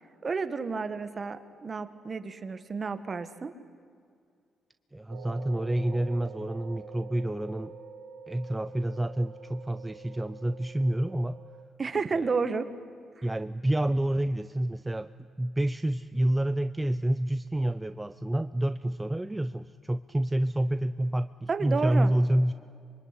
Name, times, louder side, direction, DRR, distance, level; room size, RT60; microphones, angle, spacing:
voice 1, 0.2-3.5 11.8-12.7 13.2-13.3 21.5-22.1, right 4 dB, 35° right, 11 dB, 1.8 m, -31 dB
voice 2, 4.9-7.7 8.3-11.4 13.2-22.5, right 1 dB, 10° right, 12 dB, 0.6 m, -28 dB
sound 1, 5.1-11.7, right 5 dB, 75° right, 2.0 m, -47 dB
25.5 x 23.5 x 9.9 m, 2.3 s
cardioid pair, 90°, 0 cm